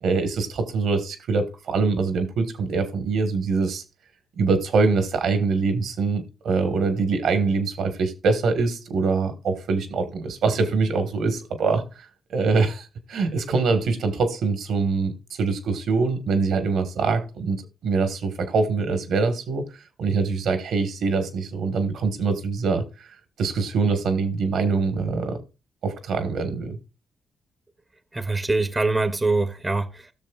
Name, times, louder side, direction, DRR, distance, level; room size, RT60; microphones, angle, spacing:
voice 1, 0.0-3.8 4.4-11.8 12.3-15.1 15.4-19.6 20.0-25.4 25.8-26.8, right 4 dB, 75° right, 1.4 m, -24 dB
voice 2, 28.1-30.1, right 3 dB, 20° right, 0.9 m, -24 dB
16.0 x 6.4 x 2.4 m
supercardioid pair, 60°, 0 cm